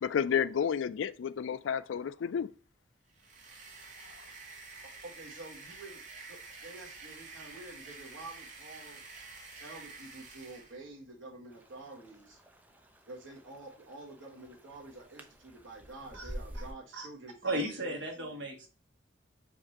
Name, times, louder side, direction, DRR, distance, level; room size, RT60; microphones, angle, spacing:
voice 1, 0.0-2.5, left 7 dB, 75° left, 0.3 m, -31 dB
sound 1, 3.1-10.8, right 3 dB, 40° right, 0.9 m, -49 dB
voice 2, 5.0-6.0 6.3-9.0 9.6-12.4 13.0-18.0, right 2 dB, 85° right, 1.4 m, -48 dB
sound 2, 11.5-16.7, equal, 10° right, 0.4 m, -48 dB
voice 3, 17.4-18.7, right 1 dB, 65° right, 1.3 m, -35 dB
4.9 x 2.6 x 4.2 m
head